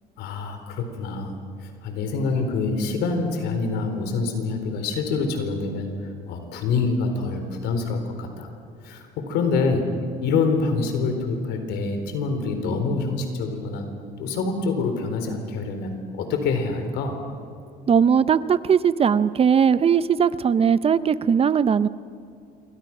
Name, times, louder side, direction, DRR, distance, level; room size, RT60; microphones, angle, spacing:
voice 1, 0.2-1.3 1.6-8.5 8.8-9.9 10.2-13.9 14.2-17.2, left 4 dB, 85° left, 6 dB, 4.0 m, -26 dB
voice 2, 17.9-21.9, right 7 dB, 35° right, 15 dB, 0.7 m, -19 dB
27.5 x 24.0 x 6.1 m, 2.6 s
cardioid pair, 110°, 17 cm